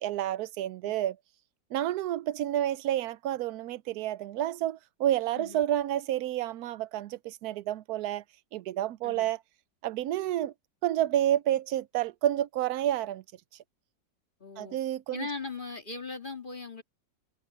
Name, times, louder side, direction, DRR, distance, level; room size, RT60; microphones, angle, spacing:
voice 1, 0.0-1.2 1.7-8.2 8.5-9.4 9.8-10.5 10.8-13.2 14.6-15.3, right 12 dB, 70° right, 1.0 m, -29 dB
voice 2, 5.3-5.6 9.0-9.3 14.4-14.8 15.1-16.8, left 4 dB, 25° left, 2.1 m, -39 dB
omnidirectional pair, 2.0 m